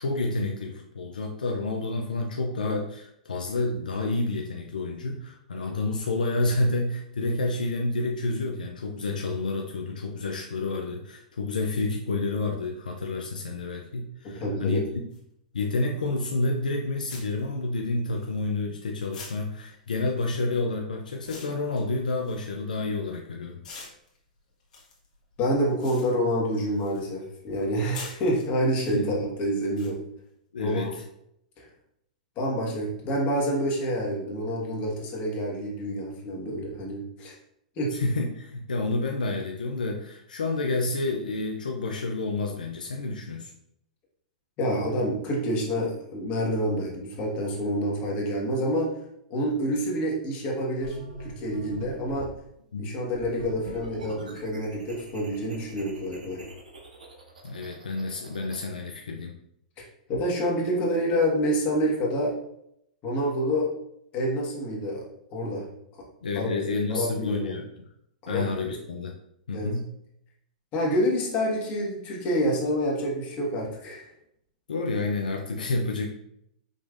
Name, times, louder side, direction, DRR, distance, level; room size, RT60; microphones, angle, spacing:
voice 1, 0.0-14.8 15.5-23.6 28.9-29.1 30.5-31.0 37.9-43.5 52.7-53.0 57.4-59.3 66.2-67.7 68.3-69.2 69.5-69.9 74.7-76.1, left 2 dB, 85° left, 2 dB, 0.4 m, -29 dB
voice 2, 14.2-14.8 25.4-30.0 30.6-30.9 31.6-31.7 32.4-37.3 37.8-37.9 44.6-48.9 49.3-52.3 52.8-56.4 60.1-62.3 63.0-63.7 64.1-65.0 65.3-65.6 66.3-66.5 66.9-67.5 68.2-68.8 69.5-69.7 70.7-74.1, equal, 40° left, -3 dB, 1.5 m, -27 dB
sound 1, 15.1-15.2 16.4-16.5 17.1-18.7 19.1-23.2 23.6-27.1 27.4-29.0 29.8-29.9, left 4 dB, 65° left, 1.2 m, -46 dB
sound 2, 50.8-52.4 53.1-58.7, right 2 dB, 90° right, 0.7 m, -43 dB
5.2 x 3.0 x 2.5 m, 0.75 s
hypercardioid pair, 110°, 4 cm